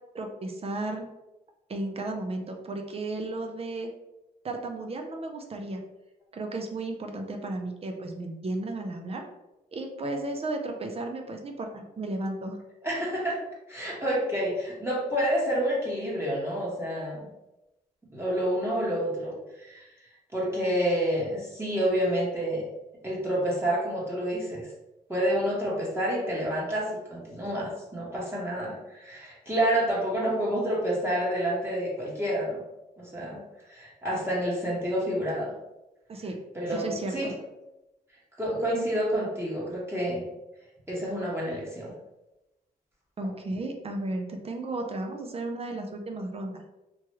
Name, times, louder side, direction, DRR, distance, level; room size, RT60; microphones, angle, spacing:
voice 1, 0.1-1.1 1.7-3.9 4.4-5.8 6.3-9.2 9.7-12.6 36.1-36.4 36.7-37.3 43.2-46.7, right 2 dB, 40° right, 3 dB, 0.5 m, -34 dB
voice 2, 12.8-13.3 13.7-17.2 18.1-19.8 20.3-22.6 23.0-24.7 25.1-32.6 33.0-33.4 33.7-35.5 36.5-37.3 38.4-40.2 40.9-41.9, equal, 15° right, -6 dB, 1.1 m, -28 dB
3.0 x 2.3 x 3.0 m, 0.95 s
cardioid pair, 80°, 16 cm